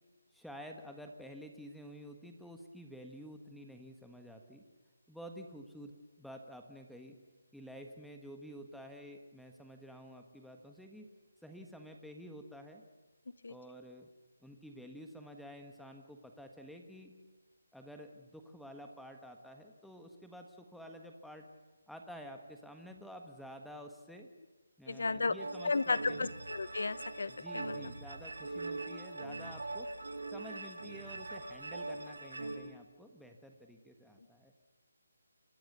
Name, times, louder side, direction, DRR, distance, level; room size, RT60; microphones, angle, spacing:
voice 1, 0.3-4.6 5.1-5.9 6.2-7.1 7.5-11.1 11.4-12.8 13.5-14.1 14.4-17.1 17.7-21.4 21.9-24.3 24.8-26.3 27.3-29.9 30.3-34.5, equal, ahead, 4 dB, 1.6 m, -50 dB
voice 2, 24.9-25.3 25.6-27.8, left 3 dB, 70° left, 17 dB, 1.1 m, -34 dB
sound 1, 25.4-32.6, right 2 dB, 80° right, 6.4 m, -42 dB
29.5 x 24.0 x 6.9 m, 1.3 s
figure-of-eight pair, 160°, 0 cm